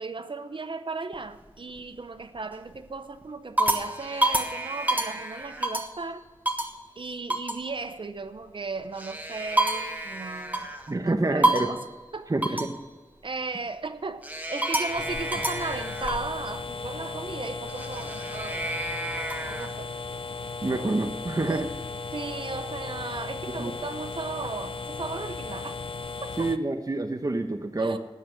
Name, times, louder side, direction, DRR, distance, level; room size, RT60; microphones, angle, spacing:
voice 1, 0.0-6.2 7.0-10.7 11.0-11.8 12.1-12.6 13.2-18.8 19.5-19.9 21.5-21.7 22.1-25.8 26.2-26.5 27.8-28.0, right 3 dB, 65° right, 9 dB, 0.8 m, -36 dB
sound 1, 1.1-1.8 2.4-2.8 3.2-6.0 6.5-6.8 7.3-7.6 8.8-10.9 11.4-11.9 12.4-12.8 14.2-16.3 17.7-19.7, right 1 dB, 15° right, 1.4 m, -29 dB
voice 2, 10.9-11.7 12.3-12.8 20.6-21.7 23.6-23.7 26.4-28.0, right 2 dB, 40° right, 5 dB, 0.9 m, -27 dB
sound 2, 14.9-26.6, left 4 dB, 70° left, 0.5 m, -36 dB
13.0 x 8.6 x 6.6 m, 1.4 s
wide cardioid pair, 80°, 9 cm